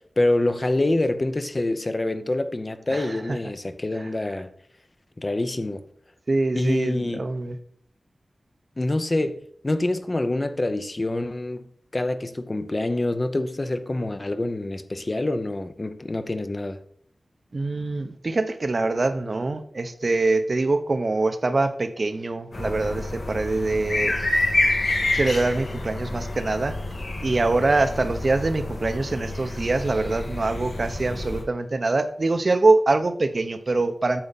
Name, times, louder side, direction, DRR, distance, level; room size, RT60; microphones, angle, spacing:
voice 1, 0.0-4.5 5.2-5.8 6.5-7.3 8.8-9.4 9.6-11.7 11.9-16.8, left 2 dB, 35° left, 0.7 m, -26 dB
voice 2, 2.9-3.4 6.3-7.6 17.5-24.2 25.1-26.8 27.2-34.2, right 3 dB, 55° right, 0.8 m, -24 dB
sound 1, 22.5-31.4, left 2 dB, 75° left, 2.3 m, -28 dB
8.8 x 6.9 x 4.1 m
wide cardioid pair, 65°, 0 cm